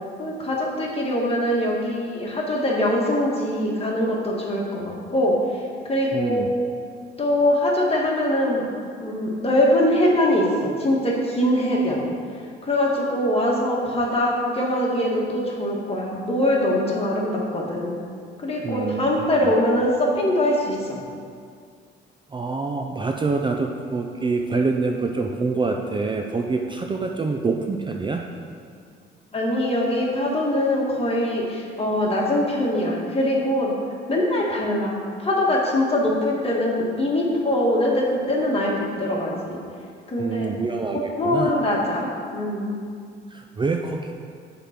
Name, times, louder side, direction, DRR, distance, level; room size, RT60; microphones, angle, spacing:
voice 1, 0.2-5.3 5.8-6.4 7.2-8.7 9.0-12.0 12.6-17.9 18.4-20.9 29.3-33.7 34.1-34.9 35.2-39.6 40.1-40.5 40.9-42.8, left 1 dB, 30° left, -3 dB, 1.6 m, -22 dB
voice 2, 6.1-6.5 18.6-19.3 22.3-28.2 40.2-41.6 43.3-44.1, right 4 dB, 25° right, 3 dB, 0.4 m, -26 dB
7.0 x 3.8 x 5.9 m, 2.2 s
cardioid pair, 90°, 20 cm